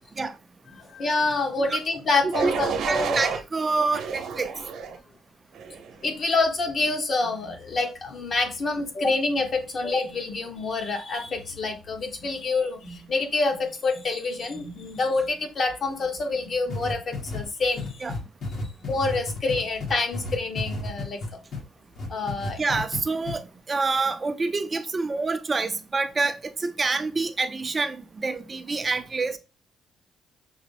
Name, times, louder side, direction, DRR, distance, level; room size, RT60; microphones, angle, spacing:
voice 1, 0.7-3.2 6.0-18.1 18.6-21.2 22.1-22.6, left 3 dB, 45° left, 1.0 m, -27 dB
sound 1, 2.3-3.4 3.9-5.0 5.5-5.9, right 6 dB, 80° right, 0.8 m, -30 dB
voice 2, 2.9-4.5 18.0-18.1 22.6-29.4, right 3 dB, 30° right, 0.4 m, -27 dB
sound 2, 16.7-21.6 22.0-23.0 23.3-23.4, left 2 dB, 65° left, 1.5 m, -32 dB
5.8 x 2.0 x 3.4 m
cardioid pair, 90°, 0 cm